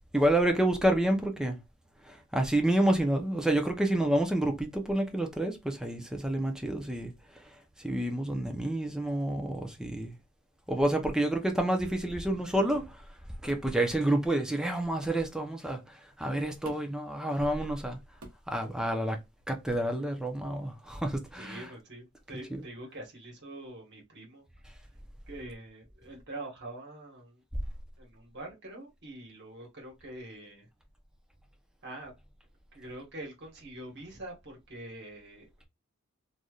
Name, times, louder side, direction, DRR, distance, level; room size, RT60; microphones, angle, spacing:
voice 1, 0.1-1.6 2.0-7.1 7.8-10.1 10.7-13.0 13.4-18.0 18.5-19.2 19.5-21.7, right 1 dB, 5° right, 0.6 m, -29 dB
sound 1, 13.5-13.7 15.0-15.2 16.6-17.0 18.2-18.5 19.7-19.9, right 1 dB, 80° right, 0.9 m, -49 dB
voice 2, 21.3-24.4 25.3-27.4 28.0-30.7 31.8-32.1 32.7-35.7, right 1 dB, 55° right, 1.4 m, -45 dB
3.2 x 2.7 x 2.3 m
head